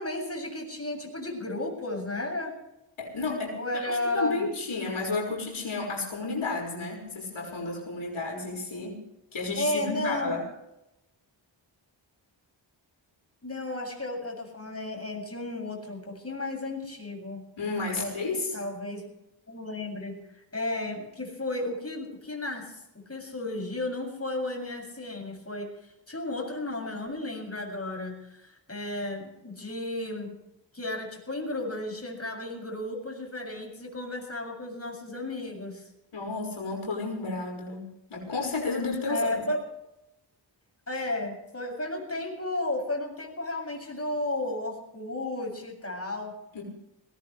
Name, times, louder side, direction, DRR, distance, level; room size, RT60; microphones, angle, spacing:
voice 1, 0.0-2.6 3.5-4.5 9.6-10.4 13.4-17.4 18.0-18.1 18.5-19.1 19.5-30.4 30.7-35.9 39.0-39.6 40.9-46.4, left 2 dB, 30° left, 1 dB, 7.6 m, -33 dB
voice 2, 3.0-9.0 9.3-10.4 17.6-18.5 36.1-37.8 38.1-39.3 46.5-46.6, left 3 dB, 90° left, -1 dB, 6.1 m, -32 dB
20.5 x 19.5 x 3.4 m, 0.86 s
wide cardioid pair, 55°, 47 cm